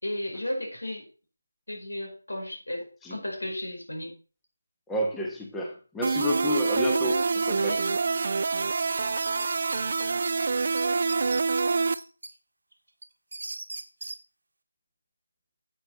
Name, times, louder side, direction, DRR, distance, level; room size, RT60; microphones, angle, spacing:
voice 1, 0.0-1.1 1.7-4.2 7.6-8.0, left 1 dB, 85° left, 1 dB, 4.9 m, -34 dB
voice 2, 4.9-7.8, equal, 5° left, 0 dB, 1.1 m, -30 dB
sound 1, 6.0-11.9, right 4 dB, 45° right, 0.5 m, -26 dB
sound 2, 8.8-10.3 10.8-10.9 11.1-12.3 12.7-14.2, right 2 dB, 70° right, 1.4 m, -39 dB
9.1 x 7.9 x 4.2 m, 0.36 s
figure-of-eight pair, 160°, 0 cm